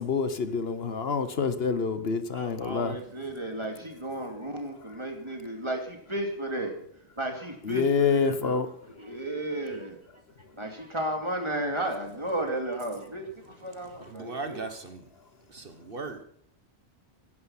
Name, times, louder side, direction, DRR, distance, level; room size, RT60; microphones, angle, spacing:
voice 1, 0.0-3.0 7.6-8.7, left 5 dB, 65° left, 11 dB, 1.3 m, -27 dB
voice 2, 2.3-8.6 9.0-10.0 10.6-14.8, right 1 dB, 25° right, 3 dB, 2.9 m, -34 dB
voice 3, 14.1-15.0 15.5-16.2, right 3 dB, 55° right, 9 dB, 1.5 m, -37 dB
16.0 x 11.0 x 5.9 m, 0.62 s
omnidirectional pair, 1.1 m